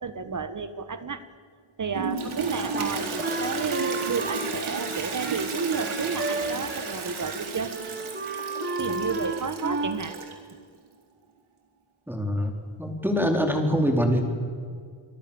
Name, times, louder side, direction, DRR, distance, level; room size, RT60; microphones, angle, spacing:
voice 1, 0.0-1.3 1.8-7.8 8.8-10.1, right 5 dB, 40° right, 11 dB, 1.6 m, -31 dB
Toilet flush, 1.9-10.5, right 5 dB, 90° right, 4.2 m, -33 dB
Wind instrument woodwind instrument, 2.7-7.0 7.2-7.4 7.7-10.0, right 3 dB, 20° right, 2.6 m, -32 dB
voice 2, 12.1-14.2, equal, 5° right, 3 dB, 4.1 m, -24 dB
27.5 x 23.5 x 7.2 m, 2.1 s
wide cardioid pair, 130°, 48 cm